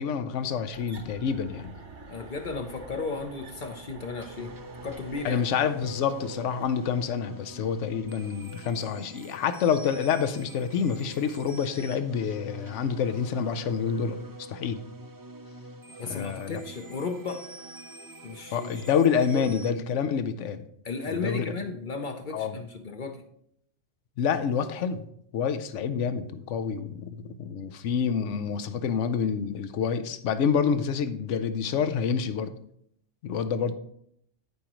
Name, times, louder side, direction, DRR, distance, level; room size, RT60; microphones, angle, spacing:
voice 1, 0.0-1.7 5.2-14.8 16.1-16.6 18.5-20.6 21.1-21.6 22.3-22.6 24.2-25.0 25.3-32.5 33.2-33.8, left 7 dB, 75° left, 10 dB, 1.0 m, -28 dB
sound 1, 0.7-7.1, right 3 dB, 70° right, 1.5 m, -48 dB
voice 2, 2.1-4.6 4.8-5.4 16.0-17.5 18.2-18.9 19.3-19.5 20.8-23.2, left 4 dB, 45° left, 6 dB, 0.8 m, -35 dB
sound 2, 4.2-19.7, right 1 dB, 25° right, 0.5 m, -45 dB
15.0 x 5.0 x 3.0 m, 0.71 s
omnidirectional pair, 1.3 m